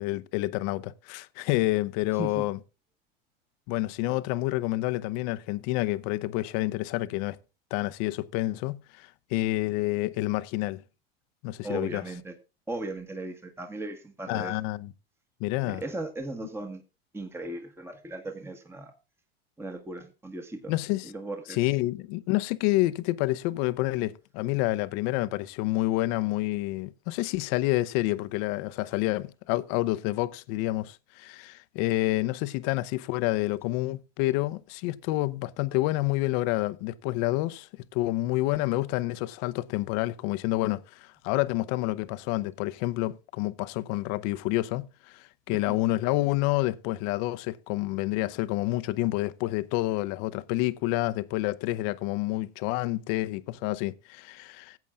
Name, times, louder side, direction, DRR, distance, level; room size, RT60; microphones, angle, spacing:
voice 1, 0.0-2.6 3.7-7.4 7.7-10.8 11.4-12.0 14.3-14.9 15.4-15.8 20.7-21.1 21.5-54.8, left 18 dB, 55° left, 0.7 m, -28 dB
voice 2, 11.6-12.3 12.7-14.6 15.6-16.8 17.1-18.9 19.6-20.7 21.0-21.6 45.5-45.8, right 2 dB, 10° right, 1.3 m, -37 dB
16.5 x 8.2 x 2.4 m
hypercardioid pair, 100°, 30 cm